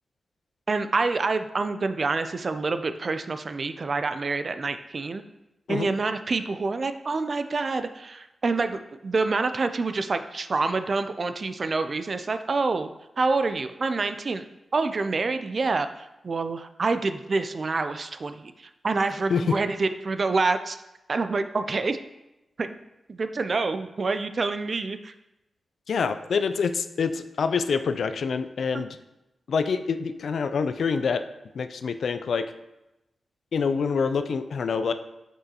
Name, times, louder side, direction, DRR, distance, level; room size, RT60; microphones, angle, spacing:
voice 1, 0.7-5.2 5.7-12.9 13.2-14.4 14.7-20.8 21.1-22.0 22.6-22.8 23.1-25.1, right 3 dB, 50° right, 9 dB, 0.3 m, -27 dB
voice 2, 25.9-29.0 29.5-31.2 31.5-32.5 33.5-34.9, left 5 dB, 80° left, 10 dB, 0.3 m, -26 dB
6.1 x 5.4 x 2.9 m, 0.95 s
cardioid pair, 80°, 0 cm